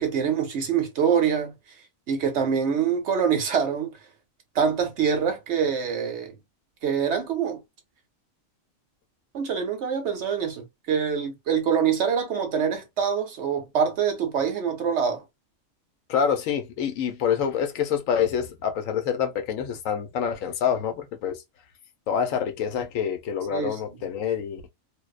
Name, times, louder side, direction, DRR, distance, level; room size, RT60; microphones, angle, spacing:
voice 1, 0.0-1.5 2.1-4.0 4.5-6.4 6.8-7.6 9.3-15.2 23.5-23.8, right 7 dB, 65° right, 0.9 m, -25 dB
voice 2, 16.1-21.4 22.1-24.6, left 8 dB, 85° left, 1.0 m, -26 dB
2.6 x 2.0 x 2.3 m
omnidirectional pair, 1.4 m